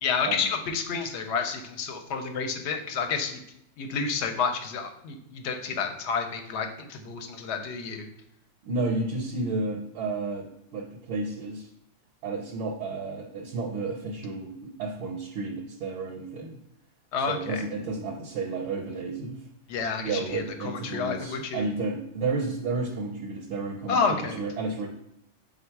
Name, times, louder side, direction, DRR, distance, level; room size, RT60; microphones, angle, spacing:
voice 1, 0.0-3.4 3.8-8.0 17.1-17.6 19.7-21.6 23.9-24.4, left 5 dB, 70° left, 6 dB, 0.8 m, -30 dB
voice 2, 8.6-11.7 12.2-16.6 17.3-19.4 20.0-24.9, right 3 dB, 80° right, 2 dB, 0.9 m, -32 dB
3.8 x 2.2 x 4.4 m, 0.79 s
omnidirectional pair, 1.3 m